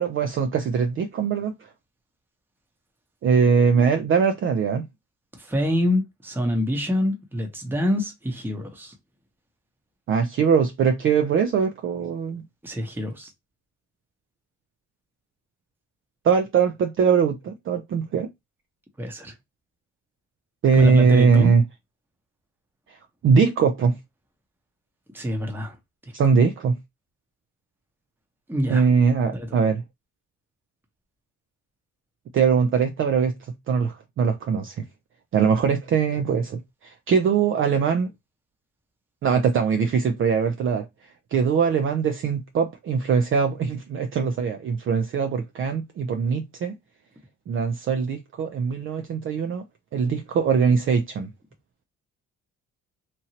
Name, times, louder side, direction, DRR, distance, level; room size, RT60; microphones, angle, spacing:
voice 1, 0.0-1.5 3.2-4.9 10.1-12.4 16.2-18.3 20.6-21.6 22.9-23.0 23.2-24.0 26.1-26.8 28.7-29.8 32.3-33.3 33.7-34.8 35.3-38.1 39.2-40.9 41.3-46.8 47.5-49.6 49.9-51.3, right 6 dB, 45° right, 0.4 m, -21 dB
voice 2, 5.3-8.9 12.6-13.3 19.0-19.3 20.8-21.5 25.1-25.8 28.5-28.9 29.3-29.6, left 1 dB, 5° right, 0.8 m, -26 dB
2.8 x 2.6 x 2.8 m
cardioid pair, 90°, 30 cm